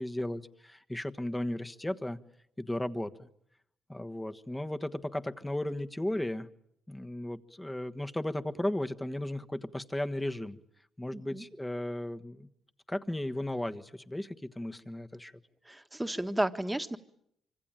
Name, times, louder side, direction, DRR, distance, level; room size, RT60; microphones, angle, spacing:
voice 1, 0.0-2.2 2.6-3.3 3.9-6.5 6.9-10.6 11.0-12.5 12.9-15.3, left 1 dB, 10° left, 8 dB, 1.3 m, -35 dB
voice 2, 11.1-11.4 15.6-17.0, right 1 dB, 10° right, 8 dB, 1.6 m, -33 dB
25.5 x 25.0 x 9.0 m, 0.73 s
cardioid pair, 90°, 0 cm